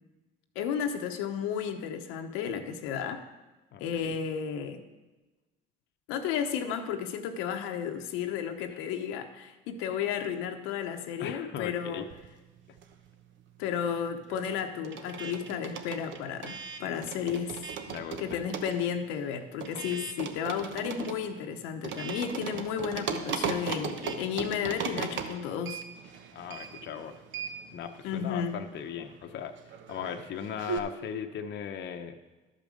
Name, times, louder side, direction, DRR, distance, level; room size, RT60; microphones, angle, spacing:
voice 1, 0.5-3.2 3.8-4.8 6.1-12.1 13.6-17.6 18.2-25.8 28.0-28.6, left 8 dB, 80° left, 5 dB, 0.9 m, -33 dB
voice 2, 3.7-4.2 8.7-8.8 11.2-12.0 17.9-18.4 19.7-20.0 26.3-27.2 27.7-29.5 29.9-32.1, left 8 dB, 55° left, 5 dB, 0.8 m, -38 dB
sound 1, 12.0-13.2 13.5-30.8, right 6 dB, 60° right, 1.0 m, -38 dB
12.0 x 5.3 x 6.4 m, 1.1 s
supercardioid pair, 90°, 21 cm